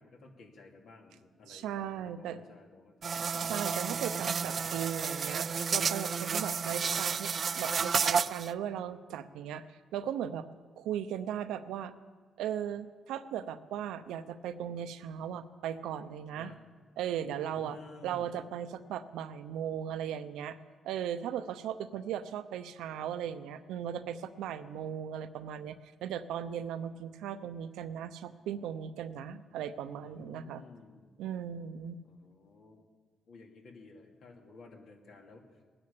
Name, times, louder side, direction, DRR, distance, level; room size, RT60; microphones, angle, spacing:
voice 1, 0.0-3.3 16.3-16.6 17.4-18.4 30.0-31.1 32.0-32.8 33.3-35.6, left 3 dB, 70° left, 1 dB, 2.7 m, -54 dB
voice 2, 1.5-2.4 3.4-10.5 10.8-11.9 12.4-16.5 17.0-17.8 18.0-20.6 20.8-25.8 26.0-30.6 31.2-32.0, right 9 dB, 90° right, 11 dB, 0.7 m, -37 dB
sound 1, 3.0-8.5, right 6 dB, 45° right, 0.4 m, -31 dB
19.5 x 10.0 x 7.0 m, 1.5 s
cardioid pair, 90°, 0 cm